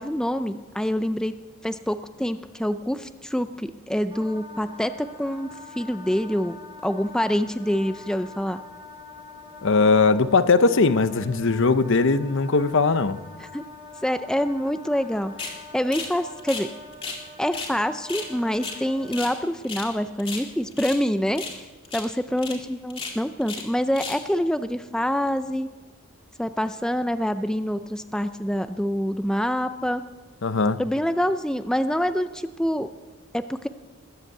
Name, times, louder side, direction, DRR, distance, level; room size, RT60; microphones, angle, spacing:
voice 1, 0.0-1.3 1.6-5.5 5.8-6.6 6.8-8.6 13.4-13.7 14.0-16.7 17.4-21.6 21.9-25.7 26.4-30.0 30.8-32.9 33.3-33.7, equal, 5° left, 10 dB, 0.4 m, -26 dB
Wind instrument woodwind instrument, 4.1-19.4, left 3 dB, 25° right, 3.1 m, -44 dB
voice 2, 9.6-13.2 30.4-30.8, left 4 dB, 60° left, 12 dB, 0.7 m, -20 dB
sound 1, 15.4-15.6 15.9-16.1 16.4-17.2 17.5-17.7 18.0-19.4 19.6-19.9 20.2-21.0 21.3-21.6 21.8-22.1 22.4-22.6 22.9-23.7 23.9-24.3, left 4 dB, 25° left, 2.2 m, -34 dB
20.5 x 8.1 x 8.6 m, 1.3 s
head